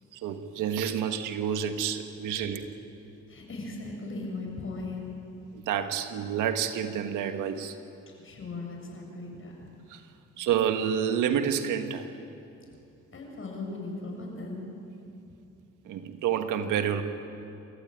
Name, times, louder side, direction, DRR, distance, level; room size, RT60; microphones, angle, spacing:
voice 1, 0.1-2.7 5.5-7.8 9.9-10.0 10.4-12.1 15.8-17.0, right 8 dB, 90° right, 7 dB, 1.6 m, -29 dB
voice 2, 3.3-5.2 8.2-9.6 13.1-14.6, left 3 dB, 45° left, 0 dB, 7.3 m, -38 dB
28.5 x 14.5 x 9.0 m, 2.8 s
cardioid pair, 90°, 30 cm